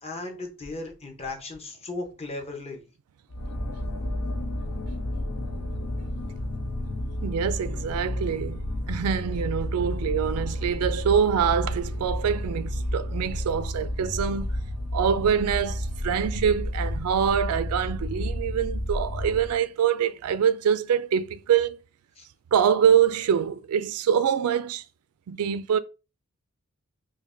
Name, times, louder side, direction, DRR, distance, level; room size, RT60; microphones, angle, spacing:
voice 1, 0.0-2.9 22.2-22.3, left 2 dB, 30° left, 0.8 m, -36 dB
sound 1, 3.3-19.6, left 1 dB, 85° left, 0.7 m, -31 dB
voice 2, 7.2-8.6 8.9-14.5 14.9-21.8 22.5-24.8 25.3-25.8, right 8 dB, 80° right, 0.3 m, -25 dB
5.1 x 2.2 x 2.5 m
head